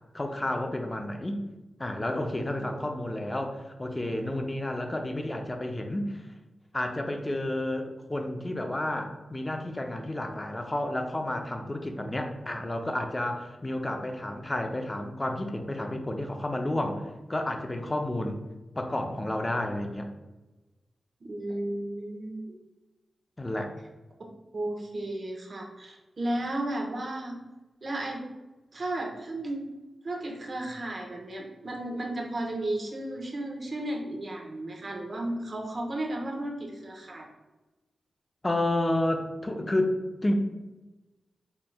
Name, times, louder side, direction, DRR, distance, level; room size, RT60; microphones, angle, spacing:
voice 1, 0.1-1.4 1.8-6.2 6.7-18.4 18.8-20.1 23.4-23.7 38.4-40.4, left 1 dB, 25° left, 4 dB, 0.6 m, -31 dB
voice 2, 21.2-22.6 24.5-27.4 27.8-28.2 28.7-29.7 30.0-37.3, right 1 dB, 55° right, 0 dB, 0.9 m, -34 dB
4.3 x 3.2 x 2.3 m, 1.1 s
cardioid pair, 55°, 0 cm